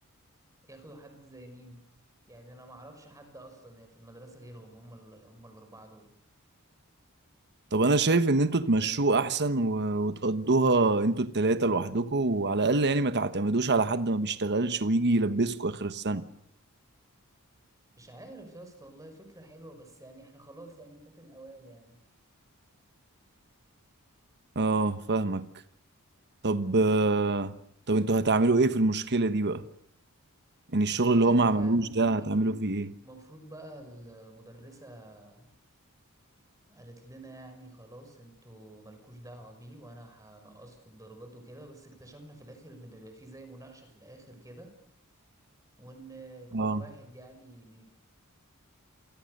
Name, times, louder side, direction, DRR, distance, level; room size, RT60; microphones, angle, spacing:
voice 1, 0.6-1.8 2.3-6.1 17.9-22.0 30.9-32.6 33.0-35.5 36.7-44.7 45.8-47.9, right 1 dB, 15° right, 5.9 m, -49 dB
voice 2, 7.7-16.2 24.5-25.5 26.4-27.5 27.9-29.6 30.7-32.9 46.5-46.8, right 2 dB, 50° right, 1.2 m, -25 dB
29.0 x 24.0 x 6.7 m
head